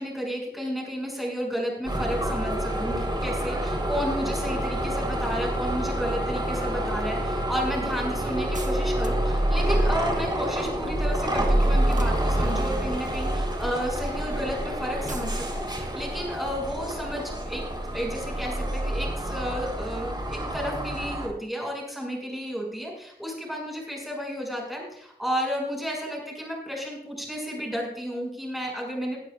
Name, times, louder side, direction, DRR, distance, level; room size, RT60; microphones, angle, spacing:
voice 1, 0.0-17.6 17.9-29.2, equal, ahead, -2 dB, 6.2 m, -32 dB
sound 1, 1.8-21.3, right 1 dB, 25° right, 3.6 m, -27 dB
sound 2, 8.5-9.4 11.8-12.7 15.1-15.4, right 3 dB, 45° right, 1.3 m, -42 dB
21.0 x 12.5 x 2.4 m, 0.69 s
wide cardioid pair, 85°, 18 cm